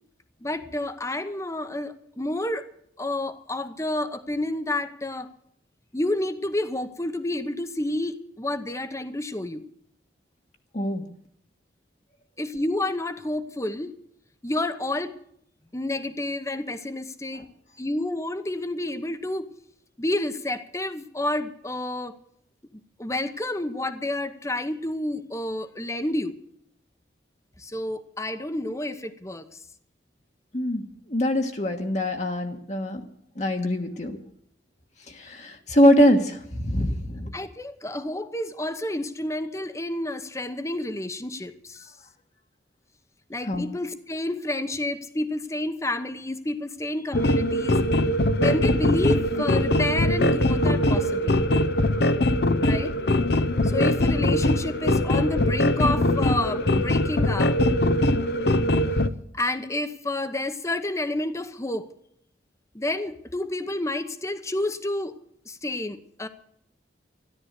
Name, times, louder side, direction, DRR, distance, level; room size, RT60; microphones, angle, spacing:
voice 1, 0.4-2.7 3.0-5.3 5.9-9.6 12.4-13.9 14.4-15.2 15.7-17.4 17.8-19.5 20.0-22.2 23.0-26.4 27.6-29.5 37.3-41.9 43.3-47.8 48.4-51.4 52.6-52.9 53.6-57.6 59.3-61.9 62.7-65.2 65.5-66.3, left 1 dB, 15° left, 11 dB, 1.0 m, -29 dB
voice 2, 31.1-33.0 33.4-34.2 35.1-37.3 43.5-43.6, equal, 40° left, 3 dB, 1.4 m, -23 dB
sound 1, 47.1-59.1, left 1 dB, 60° left, 0.8 m, -22 dB
13.5 x 11.5 x 8.2 m, 0.69 s
head